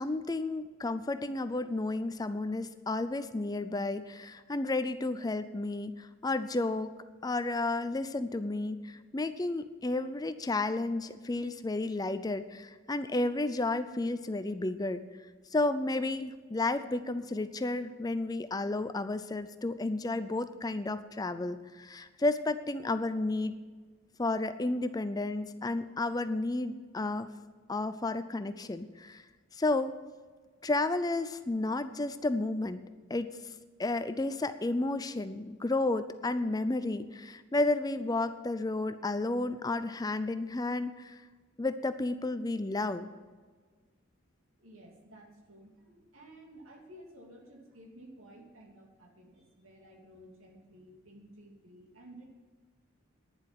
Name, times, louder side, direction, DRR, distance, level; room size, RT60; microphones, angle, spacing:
voice 1, 0.0-6.9 7.2-15.0 15.5-23.5 24.2-27.3 27.7-29.2 29.5-30.0 30.6-32.8 33.1-33.3 33.8-41.2 41.6-43.1, left 2 dB, 20° left, 11 dB, 0.4 m, -32 dB
voice 2, 44.6-52.3, right 1 dB, 80° right, 0 dB, 2.9 m, -54 dB
10.5 x 7.6 x 9.3 m, 1.5 s
head